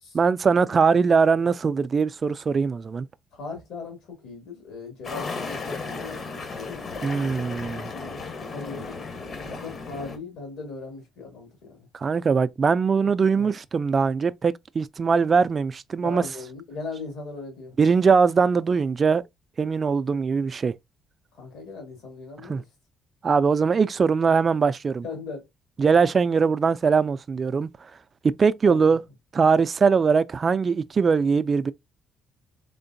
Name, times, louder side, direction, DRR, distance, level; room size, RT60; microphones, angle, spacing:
voice 1, 0.1-3.1 7.0-7.9 11.9-16.2 17.8-19.2 19.6-20.7 22.4-22.6 23.2-25.0 25.8-27.7 28.2-29.0 29.3-31.7, right 5 dB, 45° right, 0.3 m, -21 dB
voice 2, 3.3-6.8 7.7-9.0 9.4-11.9 13.0-13.1 13.4-13.5 16.0-17.7 21.3-22.6 25.0-25.4 28.6-28.9, left 3 dB, 80° left, 2.3 m, -39 dB
sound 1, 5.0-10.2, left 4 dB, 50° left, 1.0 m, -35 dB
3.7 x 3.4 x 2.6 m
supercardioid pair, 65°, 0 cm